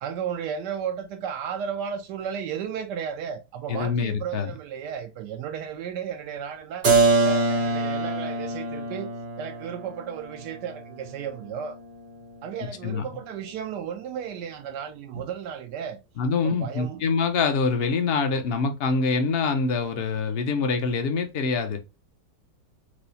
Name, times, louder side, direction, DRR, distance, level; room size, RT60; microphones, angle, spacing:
voice 1, 0.0-6.9 7.2-11.8 12.4-16.0 16.4-17.0, right 8 dB, 90° right, 1.2 m, -34 dB
voice 2, 3.7-4.5 12.8-13.1 16.2-21.8, left 4 dB, 65° left, 0.6 m, -25 dB
Keyboard (musical), 6.8-12.4, right 3 dB, 45° right, 0.7 m, -25 dB
4.7 x 2.0 x 2.7 m
omnidirectional pair, 1.7 m